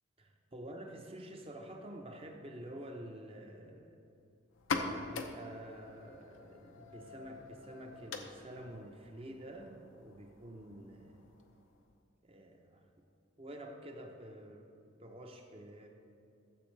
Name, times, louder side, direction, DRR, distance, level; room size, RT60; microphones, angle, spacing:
voice 1, 0.2-3.9 4.8-11.2 12.2-12.9 13.4-14.7 15.0-15.9, right 1 dB, 30° right, 3 dB, 0.8 m, -49 dB
sound 1, 4.5-12.0, left 3 dB, 85° left, 0.7 m, -44 dB
13.5 x 7.2 x 3.3 m, 2.7 s
head